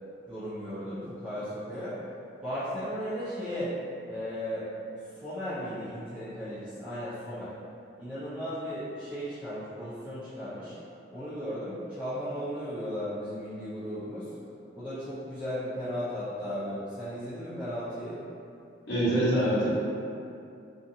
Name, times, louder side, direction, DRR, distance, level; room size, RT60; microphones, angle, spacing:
voice 1, 0.3-2.0 2.4-3.7 4.1-4.7 5.2-7.5 8.0-10.7 11.1-14.3 14.7-18.2, equal, 5° right, -15 dB, 0.5 m, -35 dB
voice 2, 18.9-19.8, right 1 dB, 80° left, -11 dB, 1.0 m, -25 dB
2.6 x 2.4 x 2.7 m, 2.6 s
head